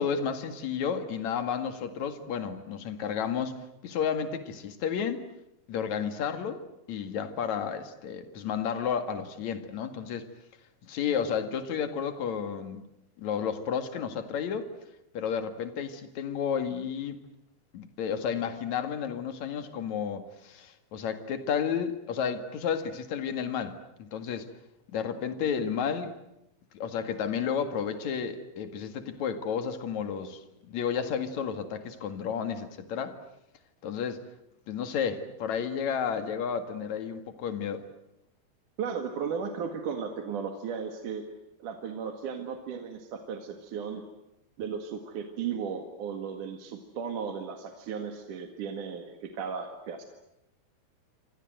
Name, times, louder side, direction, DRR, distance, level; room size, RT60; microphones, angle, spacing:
voice 1, 0.0-3.6 3.8-5.2 5.7-6.6 6.9-10.3 10.8-12.9 13.2-14.7 15.1-17.2 17.7-24.5 24.9-26.1 26.7-33.2 33.8-34.2 34.7-37.8, left 7 dB, 55° left, 9 dB, 2.9 m, -32 dB
voice 2, 38.8-41.2 41.6-44.0 44.6-50.0, right 6 dB, 60° right, 5 dB, 3.1 m, -35 dB
28.0 x 25.5 x 7.8 m, 0.85 s
omnidirectional pair, 4.4 m